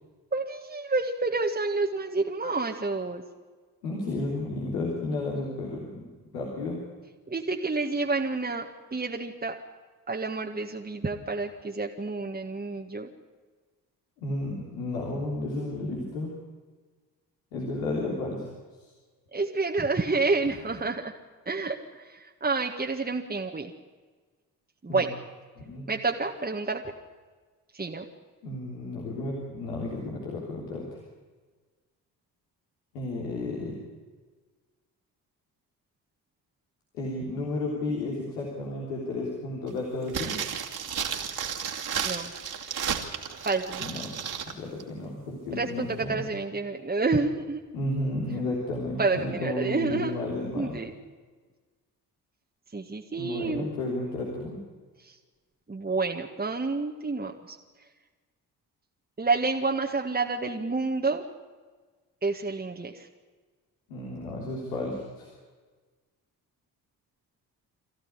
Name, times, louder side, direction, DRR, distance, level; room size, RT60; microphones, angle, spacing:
voice 1, 0.3-3.2 7.3-9.6 10.1-13.1 19.3-21.1 21.5-23.7 24.8-25.2 25.9-26.9 27.7-28.1 42.0-42.3 43.4-43.8 45.5-47.6 49.0-50.2 50.6-50.9 52.7-53.7 55.0-55.1 55.7-57.6 59.2-61.3 62.2-63.1, right 3 dB, 20° right, 2 dB, 1.9 m, -29 dB
voice 2, 3.8-6.0 6.3-6.8 14.2-16.3 17.5-18.5 18.8-18.9 24.9-25.0 25.6-25.9 28.4-31.0 32.9-33.8 36.9-40.4 43.8-44.2 44.5-46.2 47.7-50.8 53.2-54.6 63.9-65.3, left 2 dB, 75° left, -2 dB, 3.5 m, -32 dB
sound 1, 40.1-44.5 44.8-44.9, right 7 dB, 45° right, 2.7 m, -33 dB
24.0 x 15.5 x 9.7 m, 1.4 s
figure-of-eight pair, 40°, 50 cm